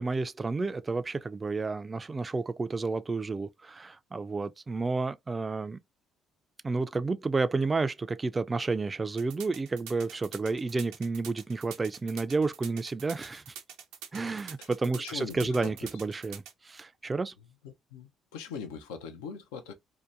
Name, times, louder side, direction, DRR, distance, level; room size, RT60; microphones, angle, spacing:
voice 1, 0.0-5.8 6.6-13.5 14.1-17.3, right 3 dB, 30° right, 0.3 m, -31 dB
sound 1, 9.2-16.5, right 8 dB, 85° right, 0.5 m, -45 dB
voice 2, 15.0-15.9 17.6-19.7, left 6 dB, 90° left, 0.5 m, -41 dB
2.7 x 2.2 x 2.4 m
supercardioid pair, 60°, 0 cm